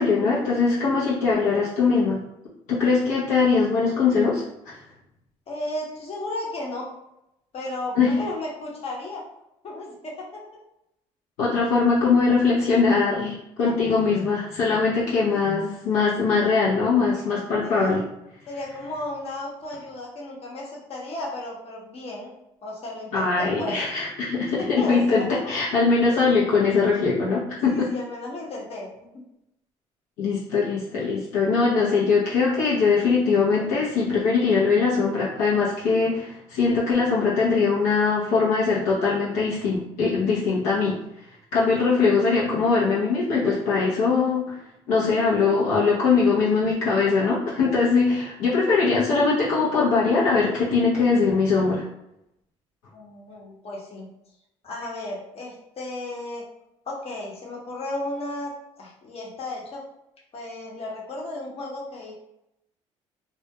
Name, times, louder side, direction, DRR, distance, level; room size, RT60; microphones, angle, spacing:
voice 1, 0.0-2.2 2.7-4.4 7.9-8.2 11.4-18.0 23.1-27.9 30.2-41.0 41.5-44.6 44.9-51.8, left 4 dB, 80° left, -6 dB, 0.6 m, -21 dB
voice 2, 5.5-6.9 7.5-9.2 9.6-10.4 13.6-14.0 15.1-15.5 17.6-18.0 18.5-22.3 22.6-23.8 24.6-25.5 27.7-28.9 52.9-54.1 54.6-56.4 56.9-58.5 58.8-59.8 60.3-62.1, left 2 dB, 50° left, -3 dB, 0.9 m, -34 dB
2.2 x 2.1 x 2.8 m, 0.85 s
supercardioid pair, 80°, 13 cm